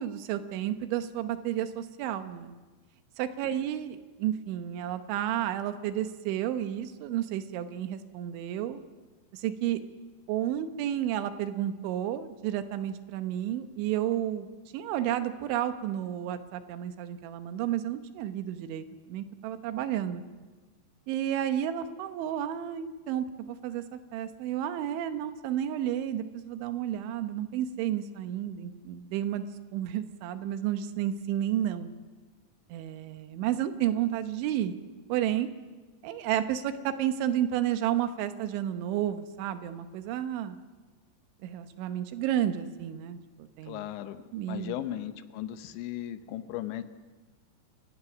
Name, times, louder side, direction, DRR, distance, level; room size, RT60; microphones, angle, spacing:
voice 1, 0.0-2.5 3.2-8.8 9.3-9.8 10.3-14.5 14.7-20.2 21.1-23.8 24.1-29.5 29.7-31.9 32.7-34.8 35.1-35.5 36.0-40.6 41.4-43.8 44.3-44.8, right 11 dB, 90° right, 9 dB, 3.4 m, -31 dB
voice 2, 43.7-44.2 44.5-46.8, left 12 dB, 80° left, 10 dB, 3.2 m, -36 dB
29.5 x 16.0 x 6.2 m, 1.3 s
omnidirectional pair, 5.2 m